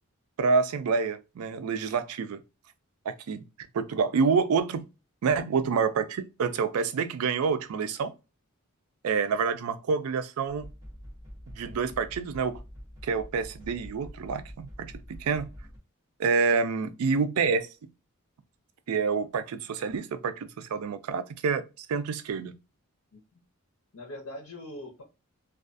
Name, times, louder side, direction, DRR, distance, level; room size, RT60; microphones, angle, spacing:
voice 1, 0.4-2.4 3.1-3.4 3.7-4.9 5.2-8.1 9.0-10.7 11.6-12.6 13.0-15.5 16.2-17.7 18.9-22.5, right 5 dB, 80° right, 0.4 m, -27 dB
sound 1, 10.5-15.8, equal, 15° right, 0.9 m, -45 dB
voice 2, 23.1-23.4 23.9-25.0, left 1 dB, 80° left, 0.8 m, -42 dB
2.3 x 2.3 x 2.5 m
head